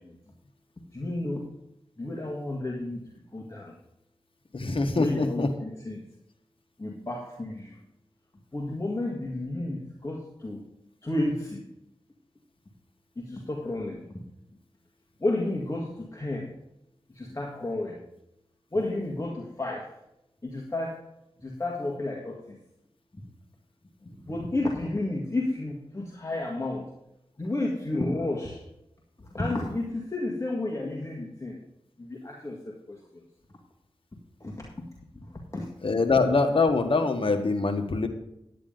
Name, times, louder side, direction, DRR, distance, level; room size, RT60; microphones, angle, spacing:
voice 1, 0.9-1.4 2.0-3.0 3.3-3.6 5.0-6.0 6.8-7.5 8.5-9.8 10.0-10.6 11.0-11.6 13.2-14.0 15.2-15.9 16.2-16.5 17.4-17.9 18.7-19.8 20.4-20.9 21.6-22.3 24.3-26.8 27.4-28.5 29.4-31.5 32.2-32.6 35.5-35.6, left 2 dB, 30° left, -1 dB, 1.9 m, -31 dB
voice 2, 4.5-5.5 35.8-38.1, left 3 dB, 60° left, 5 dB, 1.5 m, -24 dB
10.5 x 9.8 x 3.9 m, 0.85 s
cardioid pair, 45°, 10 cm